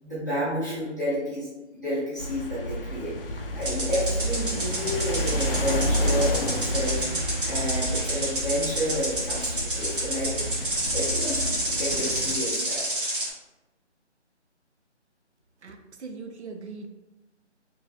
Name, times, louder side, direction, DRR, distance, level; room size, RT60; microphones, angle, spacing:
voice 1, 0.0-7.0 7.5-10.6 10.9-12.8, equal, 15° left, -12 dB, 0.8 m, -31 dB
sound 1, 2.2-12.4, equal, 50° left, 0.4 m, -30 dB
sound 2, 3.6-13.3, right 1 dB, 45° right, 1.1 m, -30 dB
voice 2, 15.6-16.9, right 4 dB, 70° right, 6 dB, 0.6 m, -40 dB
4.3 x 3.1 x 2.2 m, 1.0 s
figure-of-eight pair, 170°, 36 cm